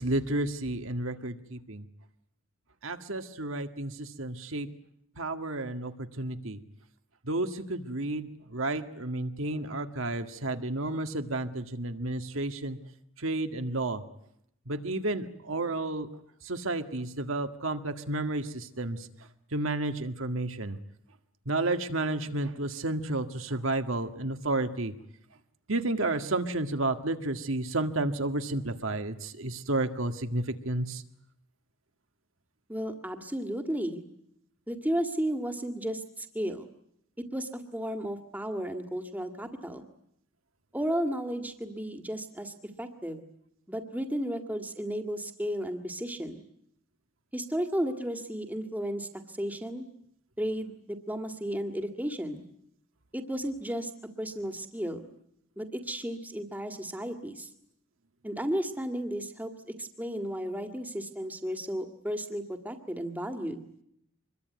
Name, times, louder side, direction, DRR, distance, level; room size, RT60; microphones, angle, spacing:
voice 1, 0.0-1.8 2.8-4.7 5.2-6.6 7.3-12.8 13.2-14.0 14.7-16.1 16.4-19.0 19.5-20.8 21.5-24.9 25.7-31.0, right 2 dB, 75° right, 7 dB, 1.9 m, -31 dB
voice 2, 32.7-34.0 34.7-36.7 37.3-39.9 40.7-43.3 43.7-46.4 47.3-49.8 50.4-52.4 53.1-53.9 54.2-55.0 55.6-57.5 58.2-59.5 59.8-63.6, equal, 10° right, 6 dB, 1.9 m, -33 dB
26.0 x 22.0 x 9.5 m, 0.73 s
head